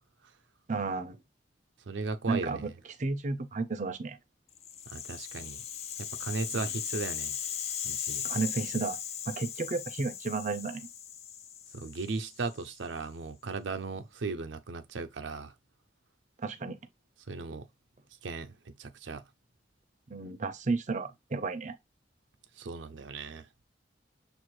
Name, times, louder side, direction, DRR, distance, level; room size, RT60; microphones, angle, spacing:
voice 1, 0.7-1.2 2.3-2.7 3.0-4.2 6.5-6.6 8.2-9.0 9.3-10.9 16.4-16.8 20.1-21.7, right 3 dB, 40° right, 0.6 m, -32 dB
voice 2, 1.9-2.8 4.9-5.6 6.0-7.4 7.8-8.3 11.7-15.5 17.3-17.7 18.2-19.2 22.6-23.5, right 4 dB, 85° right, 0.6 m, -37 dB
Rattle (instrument), 4.6-12.8, left 9 dB, 35° left, 0.3 m, -38 dB
6.7 x 2.5 x 3.1 m
head